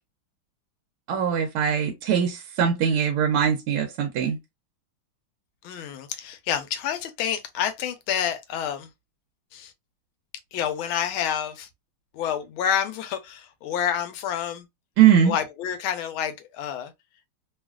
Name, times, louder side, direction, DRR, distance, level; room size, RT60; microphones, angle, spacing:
voice 1, 1.1-4.4 15.0-15.3, right 8 dB, 85° right, 1.5 m, -21 dB
voice 2, 5.6-8.9 9.5-9.7 10.5-11.7 12.1-14.7 15.2-16.9, left 9 dB, 75° left, 1.4 m, -28 dB
3.5 x 2.4 x 2.3 m
omnidirectional pair, 2.3 m